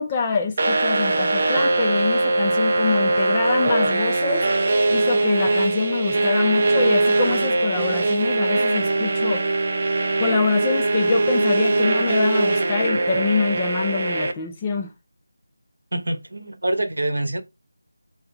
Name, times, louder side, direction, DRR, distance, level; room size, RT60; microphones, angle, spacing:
voice 1, 0.0-4.5 4.9-9.4 10.2-14.9, left 5 dB, 15° left, 0.4 m, -25 dB
sound 1, 0.6-14.3, right 2 dB, 35° right, 0.7 m, -21 dB
voice 2, 15.9-17.4, right 1 dB, 75° right, 0.8 m, -25 dB
3.8 x 2.8 x 4.3 m
figure-of-eight pair, 175°, 0 cm